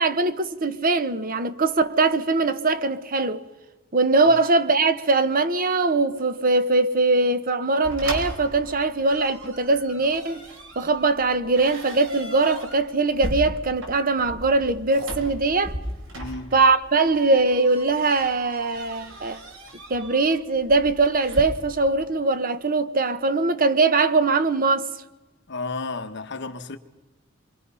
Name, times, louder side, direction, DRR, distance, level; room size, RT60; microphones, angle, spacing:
voice 1, 0.0-3.4 3.9-10.4 10.8-15.8 16.5-19.4 19.9-24.9, right 3 dB, 45° right, 1.0 m, -21 dB
sound 1, 7.8-21.4, equal, 75° right, 4.9 m, -37 dB
voice 2, 16.1-16.5 25.5-26.8, left 3 dB, 60° left, 1.3 m, -32 dB
27.5 x 23.5 x 5.6 m
head